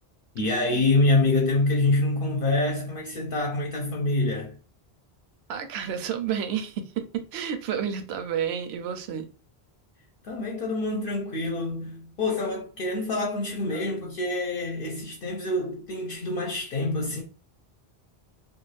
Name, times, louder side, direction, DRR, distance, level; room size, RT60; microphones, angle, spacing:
voice 1, 0.3-4.6 10.2-17.2, left 2 dB, 65° left, 0.7 m, -26 dB
voice 2, 5.5-9.3, right 8 dB, 80° right, 0.8 m, -30 dB
2.4 x 2.3 x 3.1 m
omnidirectional pair, 1.1 m